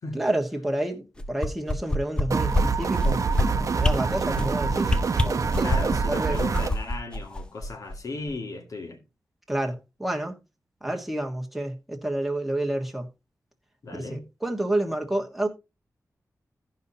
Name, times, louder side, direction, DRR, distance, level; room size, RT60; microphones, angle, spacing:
voice 1, 0.1-4.9 5.2-6.4 9.5-10.3 10.8-13.1 13.9-15.5, right 1 dB, ahead, 1.5 m, -29 dB
sound 1, 1.2-2.2 2.5-2.6 3.0-3.4 3.8-3.9 4.3-4.5 4.8-6.0 6.4-8.0 8.3-8.4, left 1 dB, 15° left, 0.7 m, -24 dB
sound 2, 2.3-6.7, right 5 dB, 60° right, 0.7 m, -26 dB
voice 2, 5.6-9.0 13.8-14.2, left 2 dB, 65° left, 2.1 m, -36 dB
16.5 x 5.6 x 2.8 m
wide cardioid pair, 155°, 6 cm